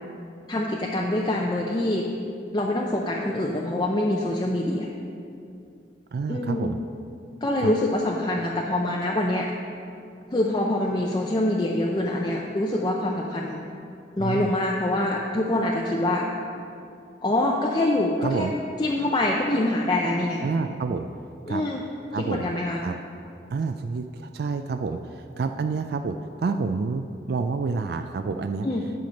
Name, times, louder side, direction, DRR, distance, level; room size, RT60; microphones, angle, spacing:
voice 1, 0.5-2.1 2.5-4.9 6.3-6.7 7.4-9.5 10.3-13.6 14.2-16.3 17.2-18.5 18.8-20.4 21.5-21.8 22.1-22.8 28.6-28.9, left 1 dB, 25° left, -2 dB, 0.5 m, -25 dB
voice 2, 6.1-6.8 7.6-7.7 14.2-14.5 18.2-18.5 20.4-21.1 21.5-21.6 22.1-22.4 22.8-22.9 23.5-25.0 25.4-28.7, right 4 dB, 60° right, 7 dB, 0.3 m, -28 dB
10.5 x 5.9 x 5.1 m, 2.5 s
head